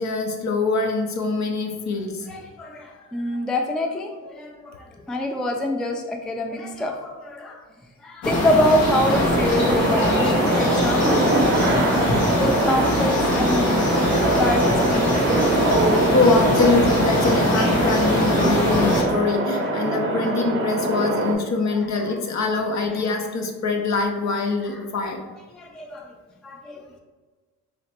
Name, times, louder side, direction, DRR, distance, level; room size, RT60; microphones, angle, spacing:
voice 1, 0.0-2.2 16.1-25.2, left 3 dB, 55° left, 3 dB, 0.7 m, -23 dB
voice 2, 2.3-7.6 8.0-12.0 12.4-15.6 19.6-19.7 21.7-22.2 22.9-23.2 24.7-24.8 25.5-26.1 26.4-27.0, left 1 dB, ahead, 2 dB, 0.3 m, -26 dB
sound 1, 8.2-19.0, left 1 dB, 85° left, 1.3 m, -22 dB
sound 2, 9.0-21.3, right 2 dB, 35° right, 0.7 m, -24 dB
3.0 x 2.9 x 4.3 m, 1.3 s
cardioid pair, 95°, 34 cm